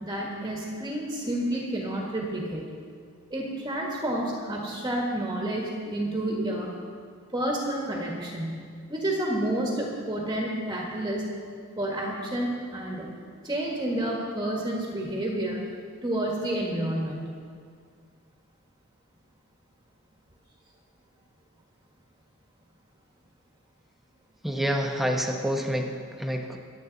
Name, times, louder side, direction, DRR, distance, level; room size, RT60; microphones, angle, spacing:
voice 1, 0.0-2.7 3.3-6.7 7.3-11.3 11.8-13.1 13.4-15.6 16.0-17.4, right 1 dB, 20° right, -2 dB, 1.6 m, -30 dB
voice 2, 24.4-26.6, equal, ahead, 2 dB, 1.1 m, -28 dB
24.5 x 8.5 x 4.1 m, 2.1 s
head